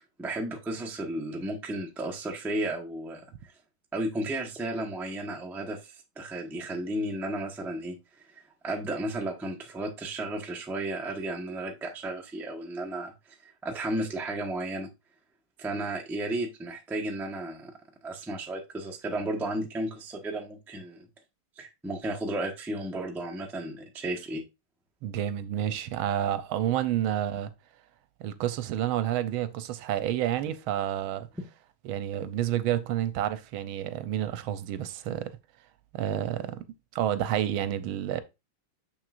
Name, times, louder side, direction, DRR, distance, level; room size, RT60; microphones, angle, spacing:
voice 1, 0.0-3.2 3.9-8.0 8.3-13.1 13.6-14.9 15.6-17.7 18.0-21.1 21.6-24.4, right 1 dB, 5° right, 0.3 m, -33 dB
voice 2, 25.0-27.5 28.2-31.3 31.8-35.3 35.9-36.6 36.9-38.2, right 11 dB, 85° right, 1.4 m, -29 dB
6.4 x 6.2 x 2.4 m
omnidirectional pair, 2.3 m